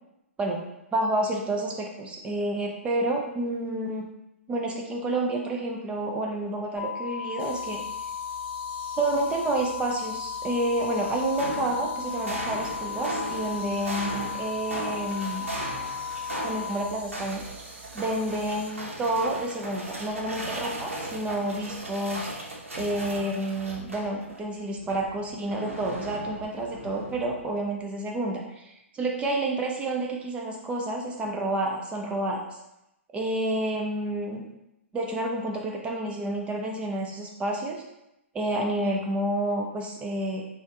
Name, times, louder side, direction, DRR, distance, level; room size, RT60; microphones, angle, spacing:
voice 1, 0.9-4.1 4.5-7.8 9.0-15.5 16.4-17.4 17.9-22.3 22.8-32.6 33.1-34.4 34.9-37.8 38.3-40.4, right 1 dB, 15° right, 0 dB, 0.5 m, -29 dB
sound 1, 6.8-16.8, left 8 dB, 10° left, 1.2 m, -35 dB
sound 2, 7.4-18.7, right 4 dB, 50° right, 0.8 m, -47 dB
delphine neel&tom, 11.0-24.4 24.8-27.5, right 1 dB, 80° right, 1.0 m, -37 dB
5.0 x 2.4 x 2.8 m, 0.87 s
figure-of-eight pair, 115°, 7 cm